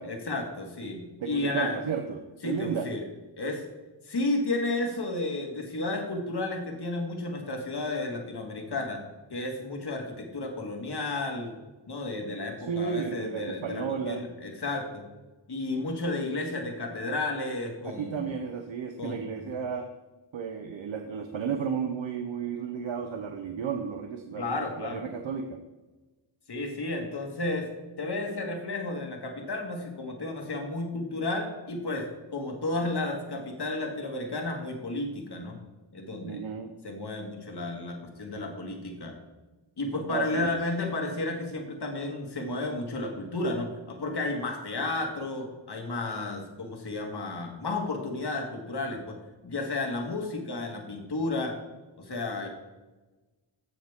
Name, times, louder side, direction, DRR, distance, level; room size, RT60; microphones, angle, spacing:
voice 1, 0.0-1.8 2.4-3.0 3.4-3.6 4.0-9.0 9.3-11.5 11.9-15.0 15.5-18.3 19.0-19.2 24.4-25.1 26.5-27.7 28.0-32.1 32.3-35.6 35.9-36.4 36.8-39.2 39.8-49.2 49.4-51.5 52.0-52.5, left 2 dB, 60° left, 2 dB, 2.0 m, -32 dB
voice 2, 1.2-2.9 12.7-14.2 15.7-15.9 17.8-19.9 20.3-25.6 36.2-36.7 40.1-40.5, right 6 dB, 80° right, 6 dB, 0.9 m, -33 dB
15.0 x 6.4 x 3.6 m, 1.2 s
wide cardioid pair, 95°, 46 cm